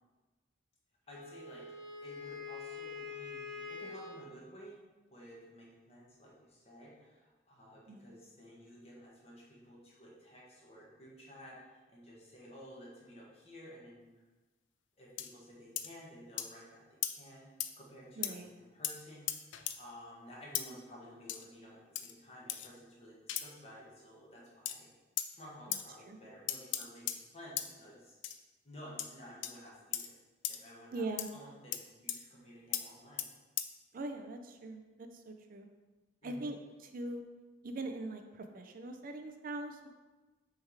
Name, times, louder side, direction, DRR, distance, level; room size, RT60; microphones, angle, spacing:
voice 1, 1.1-1.7 2.0-4.8 5.1-14.1 15.0-17.5 17.8-24.9 25.3-28.2 28.6-30.1 30.5-31.0 31.3-33.2 36.2-36.5, equal, 35° left, -5 dB, 1.6 m, -53 dB
Wind instrument woodwind instrument, 1.1-4.3, left 4 dB, 75° right, 1.3 m, -45 dB
sound 1, 15.2-15.3 15.8-15.9 16.4-16.5 17.0-17.2 17.6-17.7 18.2-18.3 18.8-19.0 19.3-19.8 20.5-20.7 21.3-21.5 22.0-22.1 22.5-22.7 23.3-23.5 24.7-24.8 25.2-25.3 25.7-25.8 26.5-27.2 27.6-27.7 28.2-28.4 29.0-29.1 29.4-29.5 29.9-30.1 30.4-30.6 31.2-31.3 31.7-31.8 32.1-32.2 32.7-32.9 33.2-33.3 33.6-33.7, left 11 dB, 80° left, 0.4 m, -36 dB
voice 2, 18.2-18.5 25.7-25.8 26.1-26.2 30.9-31.3 33.9-35.7 36.2-36.6 36.9-37.2 37.6-39.9, right 2 dB, 50° right, 6 dB, 0.4 m, -41 dB
6.4 x 3.4 x 4.7 m, 1.2 s
head